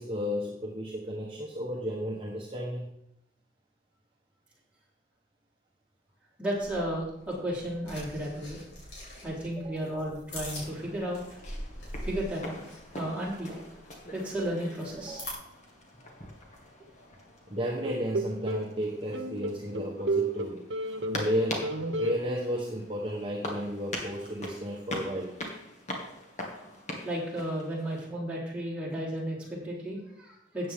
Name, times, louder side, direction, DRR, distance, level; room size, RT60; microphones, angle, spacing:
voice 1, 0.0-2.9 9.6-9.7 15.1-15.3 17.5-20.6 21.1-21.7 22.0-25.4, equal, 30° right, -3 dB, 1.3 m, -33 dB
voice 2, 6.4-8.6 9.2-11.2 12.0-12.6 12.9-13.7 14.1-15.2 27.0-30.7, right 1 dB, 5° right, -7 dB, 4.0 m, -33 dB
sound 1, 6.5-15.3, left 1 dB, 75° left, 5.4 m, -44 dB
sound 2, 10.6-28.1, left 1 dB, 40° left, 2.0 m, -43 dB
sound 3, 17.8-18.7 19.1-21.3 21.6-22.2, right 2 dB, 75° right, 1.1 m, -31 dB
13.5 x 8.7 x 3.7 m, 0.77 s
head